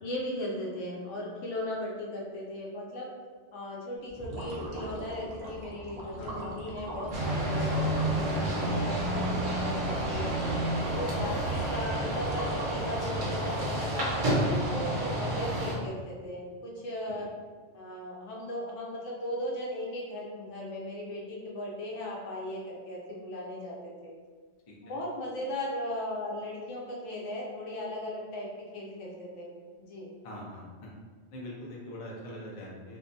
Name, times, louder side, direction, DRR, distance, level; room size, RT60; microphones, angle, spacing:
voice 1, 0.0-3.1 3.5-10.3 10.9-14.1 14.7-17.3 17.7-24.1 24.8-28.5 28.7-29.5 29.8-30.1, left 1 dB, 80° left, -2 dB, 1.0 m, -37 dB
sound 1, 4.1-13.0, right 1 dB, 65° right, 0.8 m, -41 dB
voice 2, 6.2-6.5 11.1-11.5 17.2-17.3 24.7-24.9 30.2-30.6 31.3-33.0, equal, 45° left, -4 dB, 0.4 m, -43 dB
sound 2, 7.1-15.7, right 1 dB, 80° right, 1.1 m, -30 dB
2.6 x 2.2 x 2.6 m, 1.5 s
omnidirectional pair, 1.2 m